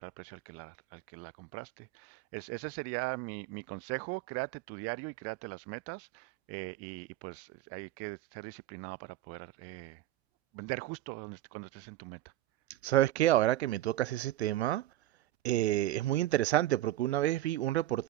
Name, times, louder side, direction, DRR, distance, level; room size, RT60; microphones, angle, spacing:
voice 1, 0.0-10.0 10.5-12.2, right 30 dB, 45° right, 5.3 m, -40 dB
voice 2, 12.8-14.8 15.4-18.0, right 14 dB, 70° right, 1.8 m, -28 dB
hypercardioid pair, 130°, 33 cm